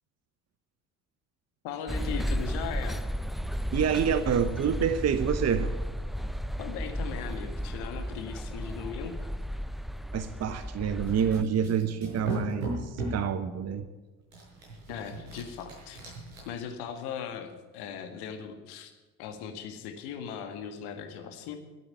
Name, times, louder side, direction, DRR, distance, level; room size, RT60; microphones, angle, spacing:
voice 1, 1.6-3.0 6.6-9.3 14.9-16.1 16.5-18.9 19.2-21.6, left 7 dB, 65° left, 6 dB, 1.9 m, -38 dB
sound 1, 1.9-11.4, equal, ahead, 0.5 m, -33 dB
voice 2, 3.7-5.7 10.1-13.9, right 7 dB, 35° right, 11 dB, 1.0 m, -27 dB
sound 2, 11.0-13.3 14.3-16.4, right 2 dB, 75° right, 6.3 m, -37 dB
13.5 x 8.8 x 9.9 m, 1.2 s
hypercardioid pair, 55°, 42 cm